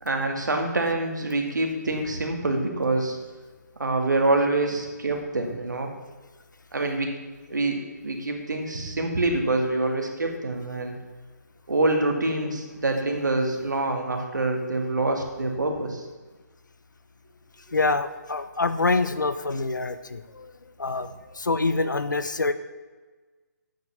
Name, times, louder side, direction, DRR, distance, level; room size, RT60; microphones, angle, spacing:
voice 1, 0.0-3.2 3.8-5.9 6.7-7.1 7.5-11.0 11.7-16.0, right 2 dB, 80° right, 3 dB, 2.1 m, -26 dB
voice 2, 17.7-20.5 20.8-21.1 21.3-22.5, left 3 dB, 85° left, 12 dB, 0.8 m, -25 dB
8.5 x 6.5 x 7.1 m, 1.3 s
figure-of-eight pair, 150°, 10 cm